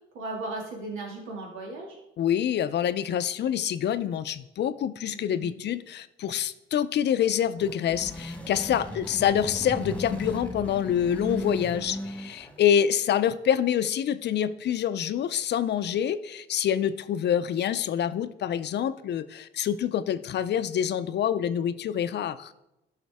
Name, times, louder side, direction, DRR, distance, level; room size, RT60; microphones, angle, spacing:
voice 1, 0.1-2.0 5.1-5.6 8.9-9.0, right 2 dB, 90° right, -1 dB, 2.2 m, -37 dB
voice 2, 2.2-22.5, left 9 dB, 60° left, 13 dB, 0.5 m, -26 dB
sound 1, 7.4-12.7, left 1 dB, 5° left, 1.4 m, -36 dB
13.0 x 5.7 x 3.5 m, 0.91 s
cardioid pair, 90°, 20 cm